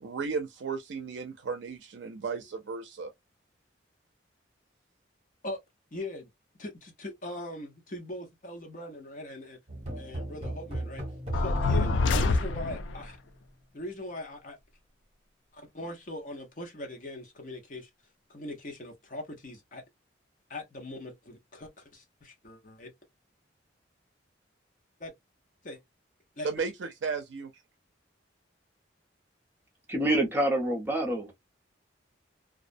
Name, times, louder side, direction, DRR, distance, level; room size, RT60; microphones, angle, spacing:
voice 1, 0.0-3.1 26.4-27.5, right 5 dB, 70° right, 0.4 m, -34 dB
voice 2, 5.9-6.3 6.6-9.6 9.9-11.0 11.3-13.2 13.7-14.6 15.5-17.9 18.3-19.8 20.5-22.9 25.0-25.1 25.6-25.8 26.4-26.5, left 1 dB, 45° left, 0.8 m, -41 dB
sound 1, 9.7-13.4, right 1 dB, 30° right, 1.0 m, -37 dB
sound 2, 11.3-13.0, left 3 dB, 80° left, 0.4 m, -26 dB
voice 3, 29.9-31.3, right 1 dB, 10° right, 0.6 m, -27 dB
2.3 x 2.1 x 2.5 m
head